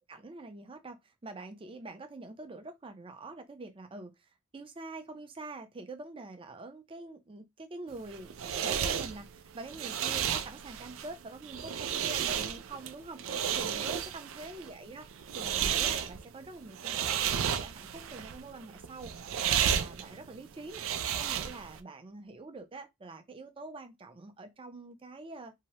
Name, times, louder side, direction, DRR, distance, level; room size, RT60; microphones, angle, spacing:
voice 1, 0.1-15.1 15.3-20.9 21.2-25.5, right 2 dB, 25° right, 0.5 m, -46 dB
sound 1, 7.9-21.8, right 9 dB, 80° right, 0.4 m, -33 dB
2.7 x 2.1 x 2.9 m
head